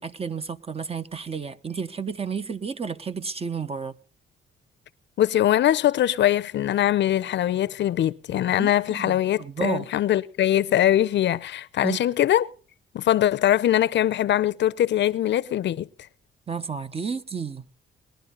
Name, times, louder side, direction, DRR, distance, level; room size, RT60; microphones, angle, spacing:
voice 1, 0.0-4.0 8.4-9.9 11.8-12.0 16.5-17.7, right 6 dB, 30° right, 1.1 m, -32 dB
voice 2, 5.2-12.5 12.9-15.9, left 12 dB, 65° left, 0.7 m, -22 dB
20.5 x 11.5 x 3.9 m
cardioid pair, 90°, 20 cm